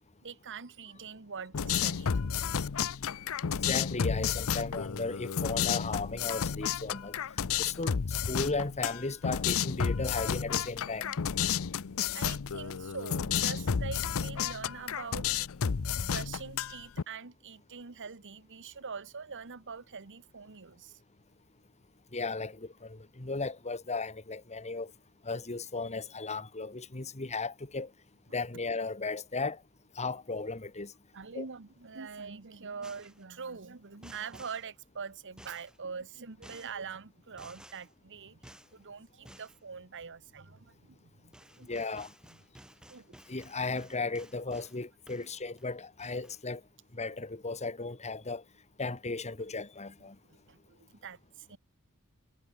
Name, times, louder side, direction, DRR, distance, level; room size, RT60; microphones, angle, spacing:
voice 1, 0.2-2.1 12.1-15.3 15.9-21.0 31.1-42.0 42.9-43.2 45.2-45.3 50.2-51.6, right 5 dB, 55° right, 1.3 m, -44 dB
sound 1, 1.5-17.0, left 7 dB, 65° left, 0.6 m, -32 dB
voice 2, 3.6-7.2 7.6-11.1 22.1-24.9 25.2-27.9 28.3-29.6 30.0-30.9 31.3-31.5 41.7-42.1 43.3-46.6 46.9-48.4 48.8-50.2, left 3 dB, 30° left, 1.8 m, -35 dB
sound 2, 32.8-33.3 34.0-34.7 35.4-35.8 36.4-36.8 37.4-37.9 38.4-38.7 39.3-39.6 41.0-41.1 41.3-44.8 45.1-45.7 46.0-46.4, right 1 dB, 5° right, 2.2 m, -54 dB
head